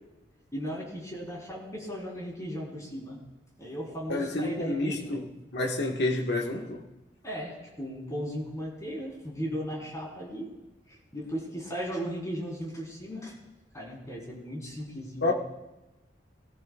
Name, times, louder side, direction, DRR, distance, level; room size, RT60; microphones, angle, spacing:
voice 1, 0.5-3.2 3.6-5.2 7.2-10.5 10.9-13.3 13.7-15.3, equal, 20° left, 4.2 m, -36 dB
voice 2, 4.1-5.2 5.5-6.8 15.2-15.3, left 2 dB, 65° left, 1.5 m, -29 dB
22.0 x 14.0 x 2.4 m
head